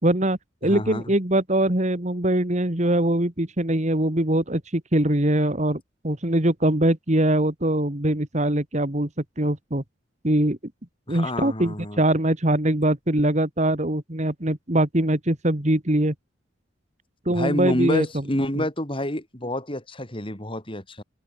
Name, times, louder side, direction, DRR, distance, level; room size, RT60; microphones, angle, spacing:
voice 1, 0.0-9.1 9.4-9.8 10.2-10.6 11.1-16.1 17.3-18.2 18.6-18.7, right 1 dB, 35° right, 2.3 m, -22 dB
voice 2, 0.6-1.0 11.1-12.0 17.3-21.0, left 1 dB, 25° left, 5.6 m, -28 dB
open air
head